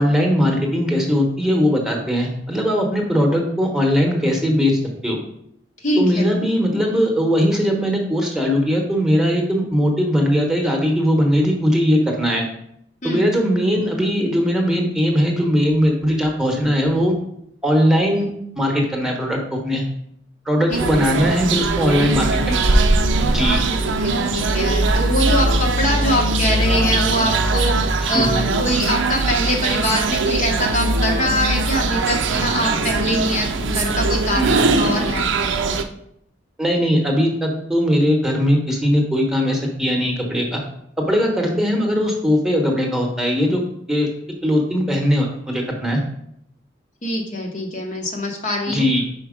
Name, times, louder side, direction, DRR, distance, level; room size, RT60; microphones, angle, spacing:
voice 1, 0.0-5.2 6.0-12.4 13.0-17.1 17.6-18.3 18.6-19.8 20.5-22.6 23.3-23.6 28.0-28.3 34.4-34.6 36.6-40.6 41.0-43.6 43.9-44.1 44.4-46.0 48.7-49.0, equal, 5° right, 0 dB, 1.0 m, -19 dB
voice 2, 5.8-6.3 13.0-13.3 20.7-21.2 23.7-35.5 47.0-48.9, left 1 dB, 40° left, 1 dB, 0.8 m, -24 dB
sound 1, 20.7-35.8, right 3 dB, 75° right, 0.5 m, -20 dB
5.1 x 4.5 x 5.0 m, 0.73 s
head